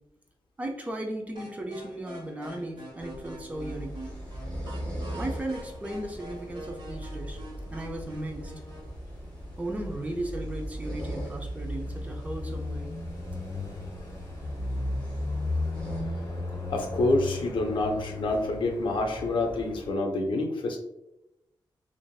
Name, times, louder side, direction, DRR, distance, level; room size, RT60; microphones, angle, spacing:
voice 1, 0.6-3.9 5.1-7.4 7.7-8.5 9.6-12.9, right 1 dB, 15° right, 1 dB, 0.4 m, -36 dB
sound 1, 1.4-8.9, right 1 dB, 80° right, 1.1 m, -45 dB
sound 2, 3.0-16.0, equal, 10° left, 0.9 m, -43 dB
sound 3, 3.5-19.9, left 1 dB, 40° left, 1.2 m, -36 dB
voice 2, 16.7-20.8, left 2 dB, 75° left, 3 dB, 0.5 m, -27 dB
3.3 x 2.5 x 2.3 m, 0.89 s
wide cardioid pair, 180°, 8 cm